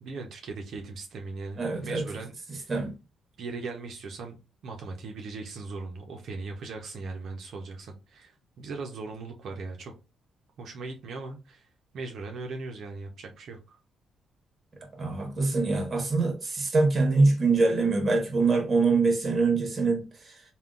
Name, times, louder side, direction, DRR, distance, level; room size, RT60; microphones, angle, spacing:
voice 1, 0.0-2.7 3.4-4.4 4.6-9.9 10.6-11.7 11.9-13.8, right 3 dB, 65° right, 0.6 m, -39 dB
voice 2, 1.6-2.0 2.5-2.9 14.9-20.4, right 3 dB, 30° right, 1.1 m, -24 dB
3.5 x 2.2 x 2.4 m
cardioid pair, 90°, 0 cm